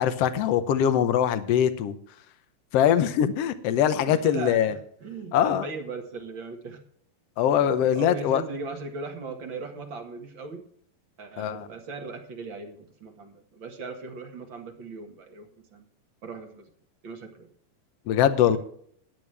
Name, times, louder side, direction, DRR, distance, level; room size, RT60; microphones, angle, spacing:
voice 1, 0.0-2.0 2.7-4.7 5.3-5.7 7.4-8.4 11.4-11.7 18.1-18.6, left 9 dB, 75° left, 11 dB, 1.5 m, -22 dB
voice 2, 4.1-6.8 7.6-10.6 11.2-15.9 16.2-16.7 17.0-17.5 18.5-18.6, right 4 dB, 45° right, 4 dB, 1.9 m, -38 dB
15.5 x 10.5 x 3.4 m, 0.63 s
omnidirectional pair, 4.0 m